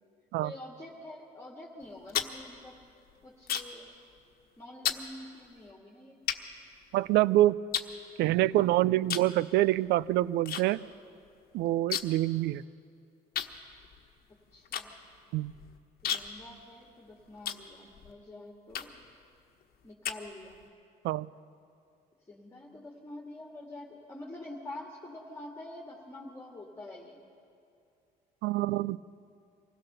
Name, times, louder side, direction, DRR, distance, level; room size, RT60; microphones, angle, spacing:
voice 1, 0.4-2.8 3.2-3.9 4.6-6.2 14.5-14.9 16.0-18.9 19.8-20.6 22.3-27.2, left 1 dB, 15° left, -2 dB, 2.1 m, -46 dB
sound 1, 1.8-3.9 4.2-4.5 4.8-5.1 5.7-5.8 6.3-7.2 7.7-8.6 9.0-9.4 9.6-10.6 10.9-11.0 11.3-12.3 12.6-12.7 13.3-18.1 18.7-19.1 19.6-20.7, left 10 dB, 60° left, 1.2 m, -35 dB
voice 2, 6.9-7.6 8.2-10.8 11.5-12.6 15.3-15.5 21.0-21.3 28.4-29.0, right 15 dB, 80° right, 20 dB, 0.4 m, -26 dB
24.5 x 16.5 x 6.8 m, 2.5 s
cardioid pair, 110°, 17 cm